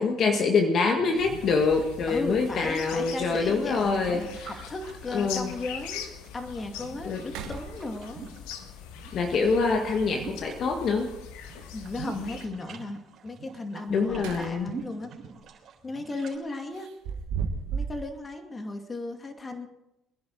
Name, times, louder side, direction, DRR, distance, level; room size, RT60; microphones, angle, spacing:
voice 1, 0.0-4.5 5.1-5.5 7.0-7.2 9.1-11.1 13.9-14.7, left 4 dB, 55° left, 4 dB, 1.7 m, -25 dB
sound 1, 0.9-6.3 6.7-8.6 8.8-11.1 11.4-16.4, right 6 dB, 55° right, 3.6 m, -44 dB
sound 2, 1.2-12.5, left 8 dB, 75° left, 1.5 m, -42 dB
voice 2, 2.1-8.2 11.7-15.1 15.8-16.9 17.7-19.7, left 2 dB, 30° left, 6 dB, 2.4 m, -36 dB
sound 3, 4.1-4.7 5.3-5.4 5.9-6.0 6.4-6.8 7.2-8.3 10.4-11.0 13.8-14.8 15.2-15.4 16.7-18.1, right 6 dB, 75° right, 1.8 m, -36 dB
22.5 x 10.5 x 4.7 m, 0.89 s
hypercardioid pair, 60°, 0 cm